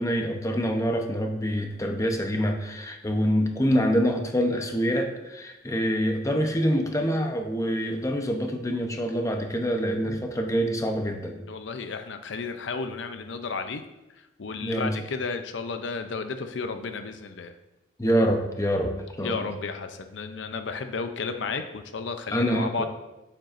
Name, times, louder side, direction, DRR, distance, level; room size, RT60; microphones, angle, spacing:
voice 1, 0.0-11.4 14.6-15.0 18.0-18.9 19.2-19.5 22.3-22.9, equal, 15° left, 4 dB, 0.8 m, -26 dB
voice 2, 11.5-13.8 14.1-17.5 19.2-22.9, left 4 dB, 70° left, 8 dB, 0.6 m, -33 dB
8.9 x 7.7 x 2.6 m, 0.97 s
head